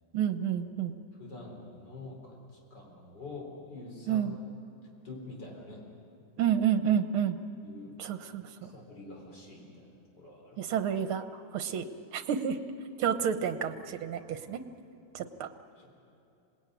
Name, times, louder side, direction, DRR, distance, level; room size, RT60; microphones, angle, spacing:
voice 1, 0.1-0.9 4.1-4.4 6.4-7.4 8.0-8.7 10.6-11.3 11.5-11.9 12.1-12.6 13.0-14.6 15.1-15.5, right 8 dB, 75° right, 10 dB, 1.9 m, -29 dB
voice 2, 1.2-4.3 5.0-5.8 7.6-8.0 8.6-9.9 10.2-10.7 14.4-14.5 15.8-15.9, left 2 dB, 50° left, -1 dB, 5.0 m, -46 dB
26.0 x 19.5 x 9.4 m, 2.7 s
omnidirectional pair, 2.4 m